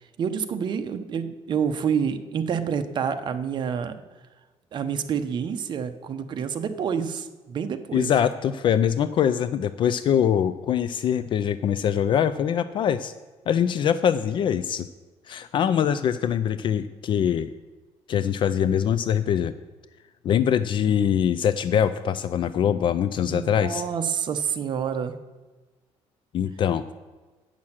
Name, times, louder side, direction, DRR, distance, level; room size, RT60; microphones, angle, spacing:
voice 1, 0.2-3.9 4.7-8.1 23.2-25.1, right 7 dB, 40° right, 8 dB, 0.8 m, -28 dB
voice 2, 7.9-13.1 13.5-14.9 15.3-17.5 18.1-19.5 20.2-23.8 26.3-26.8, left 9 dB, 45° left, 13 dB, 0.4 m, -23 dB
8.8 x 6.3 x 7.3 m, 1.3 s
cardioid pair, 155°, 11 cm